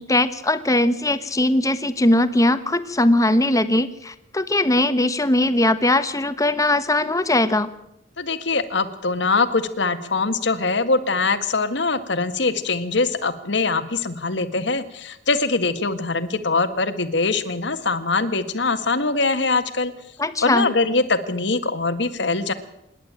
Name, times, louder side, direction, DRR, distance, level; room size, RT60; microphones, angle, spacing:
voice 1, 0.0-7.7 20.2-20.7, left 1 dB, 20° left, 11 dB, 1.2 m, -20 dB
voice 2, 8.2-19.9 20.4-22.5, left 3 dB, 65° left, 10 dB, 1.7 m, -22 dB
26.5 x 11.0 x 8.8 m, 0.81 s
head